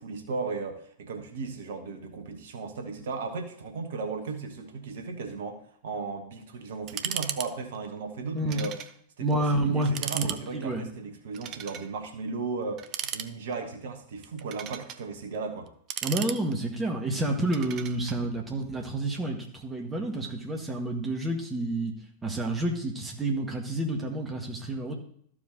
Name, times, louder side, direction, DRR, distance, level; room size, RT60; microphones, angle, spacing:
voice 1, 0.0-8.8 9.2-15.7, right 4 dB, 60° right, 5 dB, 1.3 m, -36 dB
sound 1, 6.9-7.5 7.7-7.9 8.5-8.9 9.3-9.4 9.8-10.4 11.3-11.9 12.8-13.6 14.2-15.0 15.7-16.8 17.5-18.2, right 10 dB, 35° right, 0.6 m, -35 dB
voice 2, 8.3-8.7 9.2-10.9 16.0-21.9 22.2-24.9, right 1 dB, 15° right, 1 dB, 1.8 m, -29 dB
13.5 x 4.9 x 3.9 m, 0.64 s
figure-of-eight pair, 90°, 0 cm